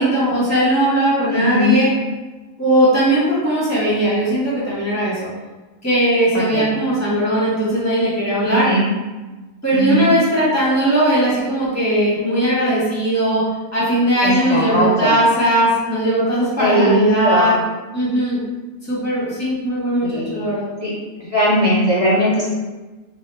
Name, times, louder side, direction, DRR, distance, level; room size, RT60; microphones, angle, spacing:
voice 1, 0.0-1.9 2.6-5.3 5.8-8.7 9.6-17.6 17.9-18.4 18.9-20.7, right 1 dB, 10° left, -8 dB, 1.2 m, -18 dB
voice 2, 1.3-1.7 6.3-6.8 8.4-8.9 9.7-10.1 14.2-15.2 16.6-17.6 20.0-20.4 20.8-20.9 21.2-22.5, equal, 90° left, -8 dB, 0.3 m, -19 dB
2.9 x 2.9 x 3.2 m, 1.2 s
omnidirectional pair, 1.5 m